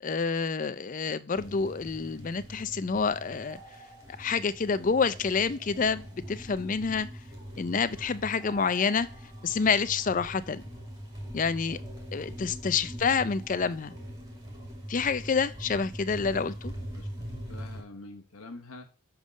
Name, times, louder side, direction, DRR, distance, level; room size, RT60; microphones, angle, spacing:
voice 1, 0.0-3.6 4.2-7.1 7.6-9.1 9.4-10.6 11.3-11.8 12.1-13.9 14.9-16.7, left 5 dB, 35° left, 14 dB, 0.4 m, -28 dB
sound 1, 1.3-17.8, equal, 15° right, 2.2 m, -42 dB
voice 2, 16.9-18.9, left 2 dB, 80° left, 6 dB, 1.0 m, -46 dB
10.5 x 3.7 x 5.2 m, 0.35 s
head